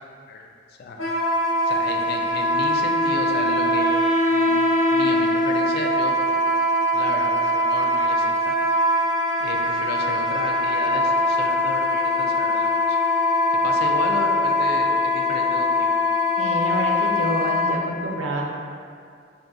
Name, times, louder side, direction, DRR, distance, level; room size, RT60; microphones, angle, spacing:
voice 1, 0.3-1.0 1.6-3.9 4.3-4.5 4.9-6.2 6.9-8.5 9.4-13.0 13.5-16.0, left 3 dB, 55° left, 2 dB, 0.3 m, -34 dB
Wind instrument woodwind instrument, 1.0-17.8, left 1 dB, 80° left, 0.7 m, -22 dB
Wind instrument woodwind instrument 2, 2.3-7.4, left 1 dB, 20° right, 0.6 m, -25 dB
voice 2, 16.4-18.4, right 1 dB, 85° right, -1 dB, 0.5 m, -28 dB
3.4 x 2.3 x 3.8 m, 2.3 s
head